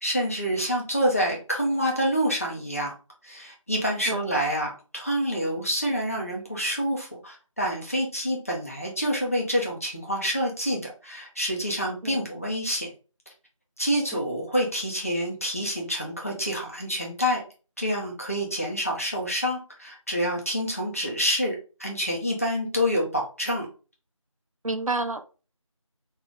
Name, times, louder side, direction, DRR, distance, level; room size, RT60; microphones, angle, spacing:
voice 1, 0.0-2.9 3.2-12.9 13.8-17.4 17.8-21.5 21.8-23.7, equal, 25° left, 0.9 m, -27 dB
voice 2, 24.6-25.3, right 3 dB, 85° right, 0.7 m, -29 dB
3.8 x 2.8 x 3.6 m
figure-of-eight pair, 175°, 17 cm